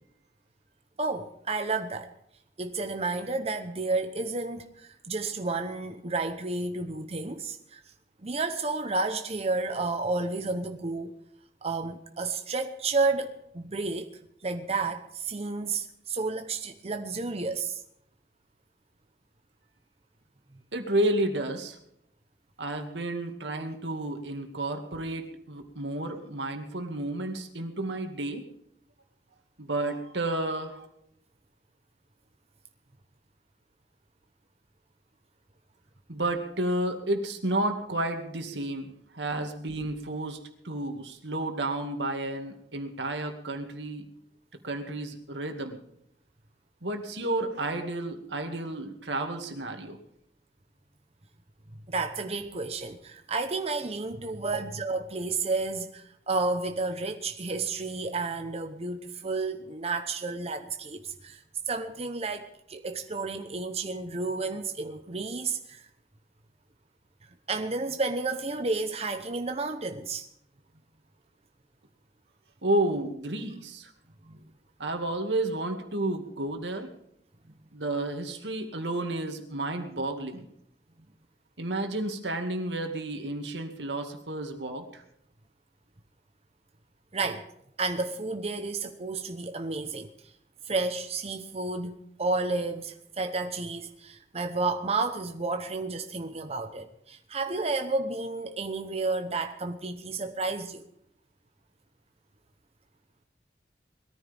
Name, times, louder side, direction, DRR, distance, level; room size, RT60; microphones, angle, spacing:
voice 1, 1.0-2.1 2.6-7.8 8.2-11.2 11.6-17.8 51.9-65.9 67.5-70.3 74.2-74.4 87.1-87.5 87.8-90.1 90.7-100.9, right 3 dB, 35° right, 6 dB, 1.0 m, -31 dB
voice 2, 20.7-21.8 22.6-28.4 29.6-30.9 36.1-44.1 44.6-45.8 46.8-50.0 72.6-73.9 74.8-76.9 77.7-80.4 81.6-85.0, right 1 dB, 85° right, 5 dB, 2.2 m, -31 dB
21.0 x 14.0 x 3.6 m, 0.75 s
head